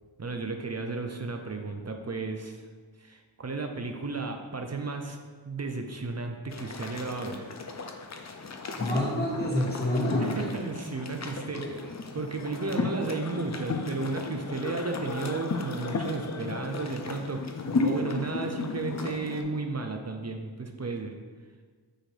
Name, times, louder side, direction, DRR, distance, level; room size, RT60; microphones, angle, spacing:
voice 1, 0.2-2.7 3.0-5.2 5.5-7.5 10.2-11.8 12.1-17.6 17.8-21.1, right 3 dB, 35° right, 4 dB, 0.5 m, -33 dB
sound 1, 6.5-19.4, left 3 dB, 35° left, 0.4 m, -34 dB
voice 2, 8.8-10.6 11.5-11.7, equal, 20° left, -6 dB, 1.4 m, -28 dB
6.2 x 2.6 x 3.3 m, 1.5 s
wide cardioid pair, 45°, 47 cm